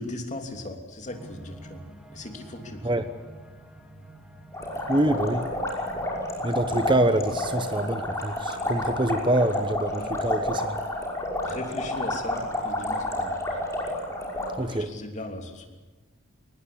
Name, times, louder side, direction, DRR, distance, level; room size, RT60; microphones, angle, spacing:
voice 1, 0.0-1.8 2.1-3.0 9.9-10.1 11.4-13.6 14.6-15.7, left 2 dB, 35° left, 4 dB, 3.1 m, -38 dB
sound 1, 1.1-8.2, right 1 dB, 5° right, 2.6 m, -47 dB
sound 2, 4.5-14.5, left 1 dB, 15° left, 5.6 m, -30 dB
voice 2, 4.9-5.4 6.4-10.6 14.6-14.9, right 1 dB, 25° right, 9 dB, 1.0 m, -25 dB
23.5 x 19.5 x 8.6 m, 1.2 s
head